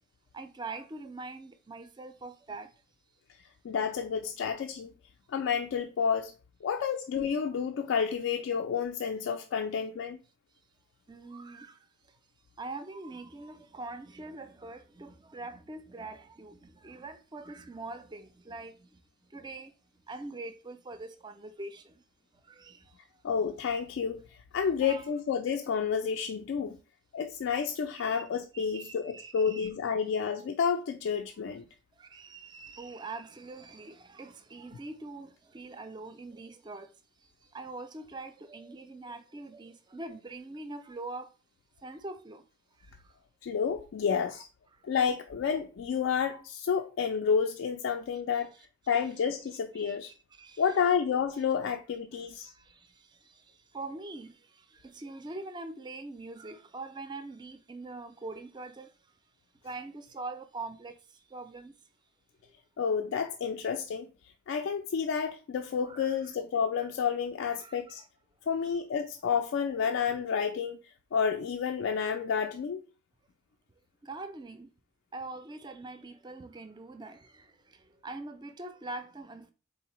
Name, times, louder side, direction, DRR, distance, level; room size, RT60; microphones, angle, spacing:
voice 1, 0.3-2.7 11.1-12.2 12.6-19.0 19.3-19.7 20.1-22.0 22.4-23.2 24.8-25.0 28.0-28.2 28.5-29.7 31.9-36.9 37.2-41.3 41.8-42.4 42.8-43.2 44.3-44.4 44.7-44.8 48.5-48.7 49.7-50.6 52.1-59.1 59.6-61.8 62.4-62.5 65.8-66.2 67.5-68.1 74.0-74.7 75.1-79.5, right 3 dB, 20° right, 0.3 m, -44 dB
voice 2, 3.6-4.9 5.3-6.3 6.6-10.2 23.2-24.2 24.5-26.8 27.1-31.7 43.4-44.5 44.8-48.5 48.9-50.1 50.6-52.5 62.8-64.1 64.5-68.0 68.5-70.8 71.1-72.8, left 6 dB, 70° left, 0.3 m, -30 dB
3.9 x 3.7 x 2.9 m
head